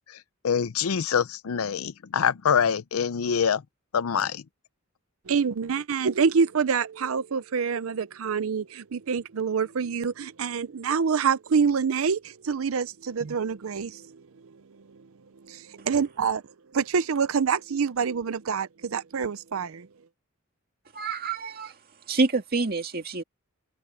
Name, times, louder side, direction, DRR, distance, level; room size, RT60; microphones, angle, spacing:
voice 1, 0.4-3.6 3.9-4.4, left 7 dB, 85° left, 0.5 m, -25 dB
voice 2, 5.3-14.2 15.5-16.4 16.7-19.9, right 6 dB, 70° right, 0.5 m, -26 dB
voice 3, 20.9-21.7 22.1-23.2, right 3 dB, 45° right, 2.0 m, -27 dB
open air
head